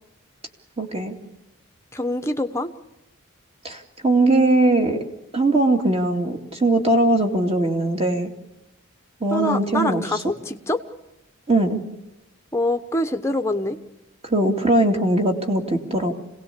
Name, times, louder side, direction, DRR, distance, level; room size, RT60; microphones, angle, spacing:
voice 1, 0.8-1.2 3.6-5.0 5.3-8.3 9.2-10.0 11.5-11.8 14.2-16.1, right 2 dB, 25° right, 3 dB, 2.3 m, -20 dB
voice 2, 1.9-2.7 9.3-10.8 12.5-13.8, left 1 dB, 10° left, 5 dB, 1.0 m, -25 dB
26.5 x 18.0 x 8.4 m, 0.98 s
head